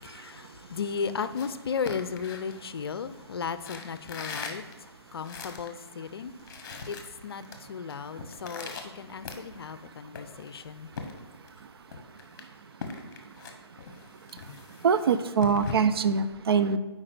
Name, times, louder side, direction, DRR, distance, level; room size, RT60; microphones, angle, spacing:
voice 1, 0.0-4.6 5.1-6.3 6.9-7.0 7.2-7.4 7.7-10.9, left 6 dB, 60° left, 13 dB, 0.5 m, -35 dB
sound 1, 1.1-3.1 3.6-5.8 6.1-6.2 6.4-7.6 7.9-9.8 10.1-11.6 11.9-15.7, left 5 dB, 45° left, 1.1 m, -41 dB
voice 2, 14.8-16.8, right 6 dB, 60° right, 11 dB, 0.5 m, -23 dB
8.6 x 4.6 x 4.4 m, 1.2 s
figure-of-eight pair, 140°, 14 cm